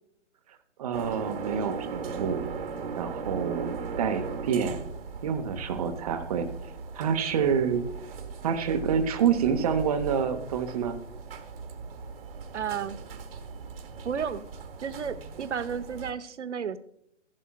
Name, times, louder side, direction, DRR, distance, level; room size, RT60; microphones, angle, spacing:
voice 1, 0.8-2.5 3.0-4.9 5.2-6.5 6.9-7.8 8.4-11.0, right 7 dB, 30° right, 8 dB, 0.8 m, -27 dB
sound 1, 0.9-16.1, right 5 dB, 50° right, 1.2 m, -38 dB
voice 2, 12.5-13.0 14.0-14.5 14.8-16.8, right 7 dB, 70° right, 13 dB, 0.8 m, -32 dB
14.0 x 11.5 x 2.2 m, 0.72 s
figure-of-eight pair, 140°, 37 cm